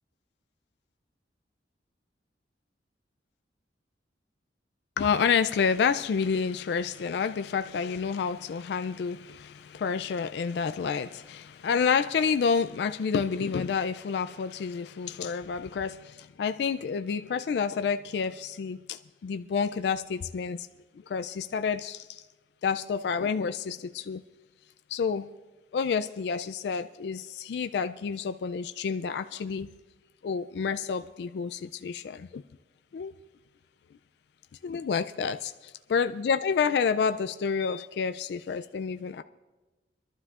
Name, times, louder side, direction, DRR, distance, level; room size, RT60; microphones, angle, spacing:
voice 1, 5.0-20.7 21.1-22.2 22.6-24.2 24.9-25.3 25.7-29.7 30.2-32.4 32.9-33.1 34.6-35.5 35.9-39.2, left 6 dB, 65° left, 0.3 m, -29 dB
25.0 x 12.0 x 2.4 m
head